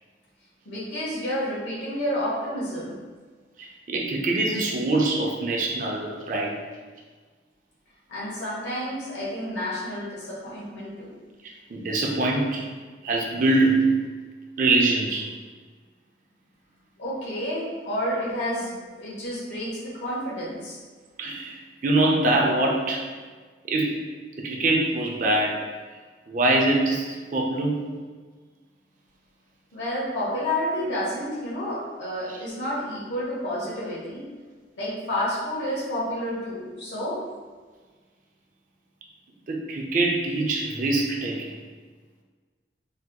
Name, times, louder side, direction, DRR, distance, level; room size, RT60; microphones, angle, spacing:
voice 1, 0.6-3.0 8.1-11.1 17.0-20.8 29.7-34.2 34.8-37.2, equal, 80° left, -7 dB, 1.3 m, -30 dB
voice 2, 3.6-6.5 11.7-12.6 13.0-13.9 14.6-15.3 21.2-23.0 23.7-23.9 24.4-25.6 26.3-27.8 39.5-41.5, right 2 dB, 45° right, -1 dB, 0.4 m, -23 dB
3.3 x 2.9 x 2.2 m, 1.4 s
head